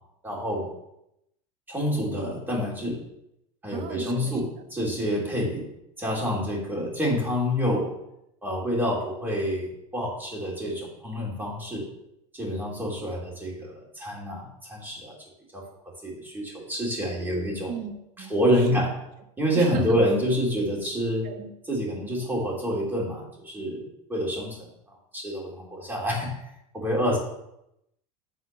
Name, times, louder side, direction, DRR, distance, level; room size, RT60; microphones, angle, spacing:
voice 1, 0.2-0.7 1.7-3.0 3.6-5.6 6.0-7.9 8.4-11.9 12.3-15.2 15.5-15.6 16.0-17.7 18.2-18.9 19.4-21.3 21.7-24.6 25.1-26.3 26.7-27.2, equal, 10° right, -3 dB, 3.3 m, -27 dB
voice 2, 3.7-4.4 17.7-18.8 19.5-20.0 21.2-21.5, right 6 dB, 50° right, 7 dB, 1.3 m, -36 dB
8.3 x 4.4 x 6.9 m, 0.83 s
supercardioid pair, 110°, 18 cm